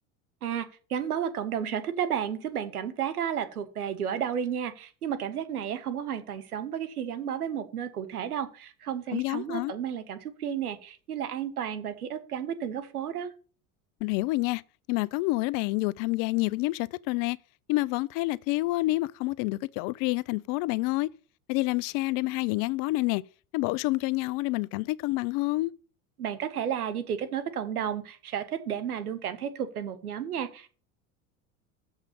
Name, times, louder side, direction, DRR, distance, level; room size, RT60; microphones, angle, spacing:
voice 1, 0.4-13.3 26.2-30.7, right 8 dB, 90° right, 1.1 m, -32 dB
voice 2, 9.1-9.7 14.0-14.6 14.9-17.4 17.7-21.1 21.5-23.2 23.5-25.7, left 20 dB, 50° left, 0.5 m, -28 dB
7.1 x 5.5 x 6.7 m
hypercardioid pair, 80°, 43 cm